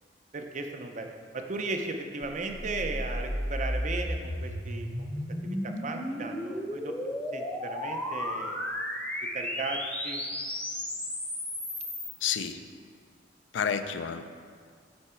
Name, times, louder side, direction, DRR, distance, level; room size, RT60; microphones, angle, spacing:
voice 1, 0.3-1.1 1.3-5.1 5.4-8.6 9.3-10.2, right 3 dB, 40° right, 4 dB, 0.6 m, -36 dB
sound 1, 2.2-12.1, left 1 dB, 5° left, 0.8 m, -34 dB
voice 2, 12.2-12.6 13.5-14.2, left 7 dB, 80° left, 9 dB, 0.4 m, -30 dB
8.6 x 4.5 x 4.4 m, 2.1 s
head